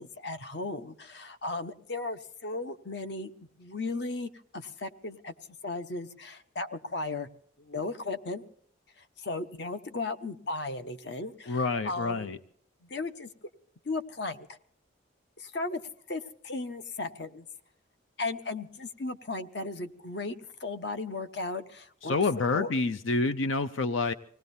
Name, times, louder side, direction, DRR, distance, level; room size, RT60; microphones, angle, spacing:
voice 1, 0.0-3.3 3.6-5.3 5.6-7.3 7.6-8.4 9.0-12.3 12.8-13.3 13.8-14.6 15.4-15.8 16.1-17.5 18.2-22.2 22.5-22.7, left 3 dB, 60° left, 10 dB, 0.9 m, -36 dB
voice 2, 11.5-12.4 22.0-24.1, left 3 dB, 85° left, 12 dB, 0.6 m, -28 dB
25.5 x 18.5 x 2.7 m, 0.64 s
head